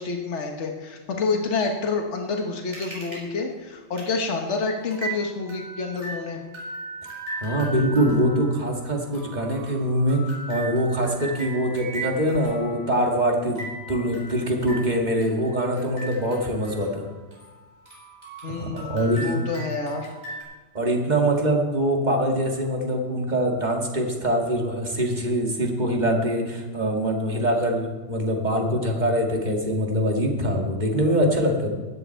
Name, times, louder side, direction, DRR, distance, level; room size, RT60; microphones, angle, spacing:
voice 1, 0.0-6.4 18.4-20.1, left 4 dB, 70° left, 2 dB, 1.6 m, -28 dB
sound 1, 2.7-3.2 3.5-3.6 4.0-4.1 4.4-4.5 4.9-17.6 17.9-20.4, right 2 dB, 70° right, 4.9 m, -38 dB
voice 2, 7.4-10.2 10.5-17.1 18.5-19.4 20.7-31.7, right 1 dB, 40° right, 1 dB, 2.0 m, -23 dB
16.0 x 10.5 x 4.5 m, 1.3 s
omnidirectional pair, 1.2 m